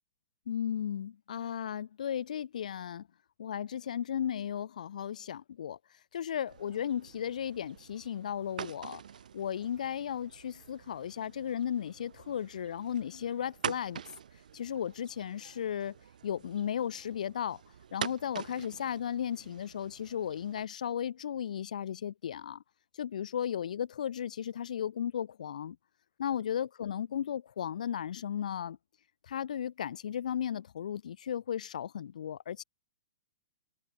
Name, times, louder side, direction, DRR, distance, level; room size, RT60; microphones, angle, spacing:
voice 1, 0.5-3.1 3.4-5.8 6.1-9.0 9.3-14.0 14.5-16.0 16.2-17.6 17.9-22.6 23.0-25.8 26.2-28.8 29.3-32.6, left 9 dB, 70° left, 1.4 m, -35 dB
sound 1, 6.5-20.6, right 8 dB, 80° right, 4.5 m, -45 dB
hypercardioid pair, 175°, 4 cm